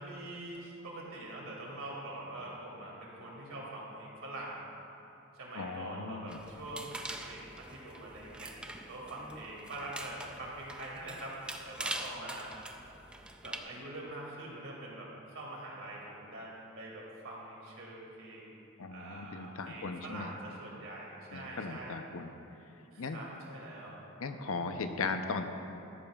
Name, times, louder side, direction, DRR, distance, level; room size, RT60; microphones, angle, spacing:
voice 1, 0.0-4.6 5.3-11.4 11.6-12.5 13.4-18.5 18.9-21.9 22.9-24.0, right 1 dB, 65° right, -4 dB, 2.4 m, -44 dB
voice 2, 5.6-6.4 18.8-20.3 21.3-22.3 23.0-23.2 24.2-25.4, left 4 dB, 70° left, 7 dB, 0.7 m, -37 dB
sound 1, 6.3-13.6, right 1 dB, 5° right, 0.4 m, -44 dB
14.0 x 12.5 x 2.4 m, 2.9 s
head